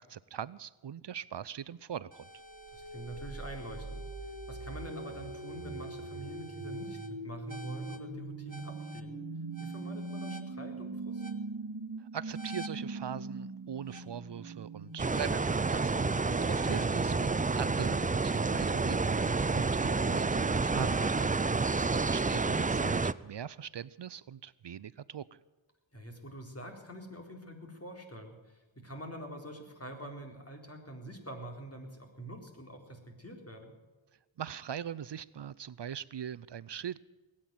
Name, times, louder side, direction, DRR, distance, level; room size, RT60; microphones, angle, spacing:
voice 1, 0.1-2.3 12.0-16.0 16.4-21.3 21.9-25.4 34.4-37.0, right 9 dB, 60° right, 19 dB, 0.6 m, -41 dB
sound 1, 2.1-21.9, right 2 dB, 40° right, 1.6 m, -42 dB
voice 2, 2.7-9.2 9.6-11.2 21.7-22.1 25.9-33.7, right 1 dB, 30° left, 3 dB, 4.2 m, -46 dB
sound 2, 15.0-23.1, right 4 dB, 20° right, 0.5 m, -29 dB
20.5 x 9.0 x 7.7 m, 1.2 s
wide cardioid pair, 50°, 47 cm